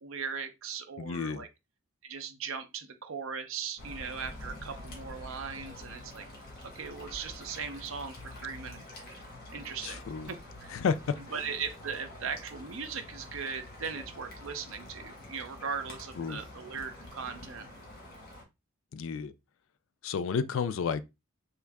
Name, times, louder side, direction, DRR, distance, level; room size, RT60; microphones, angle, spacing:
voice 1, 0.0-1.5 2.0-6.3 6.7-8.9 9.5-10.7 11.3-17.7, right 6 dB, 70° right, 0.7 m, -39 dB
voice 2, 1.0-1.5 9.8-10.3 10.7-11.2 16.2-16.4 18.9-19.3 20.0-21.0, left 6 dB, 65° left, 0.3 m, -31 dB
sound 1, 3.8-18.4, left 1 dB, 45° left, 1.4 m, -47 dB
3.6 x 2.8 x 3.4 m
head